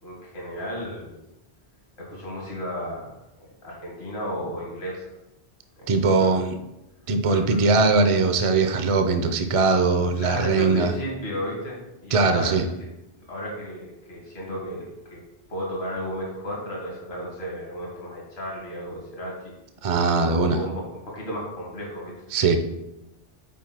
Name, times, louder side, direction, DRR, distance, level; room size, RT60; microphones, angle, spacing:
voice 1, 0.0-1.1 2.0-5.1 5.8-6.4 7.3-7.4 10.2-12.5 13.3-15.2 15.5-19.5 20.1-22.1, equal, 75° left, -4 dB, 2.1 m, -33 dB
voice 2, 5.9-6.6 7.1-10.9 12.1-12.7 19.8-20.6 22.3-22.6, right 4 dB, 40° right, 8 dB, 0.5 m, -20 dB
6.0 x 4.4 x 6.0 m, 0.92 s
omnidirectional pair, 1.1 m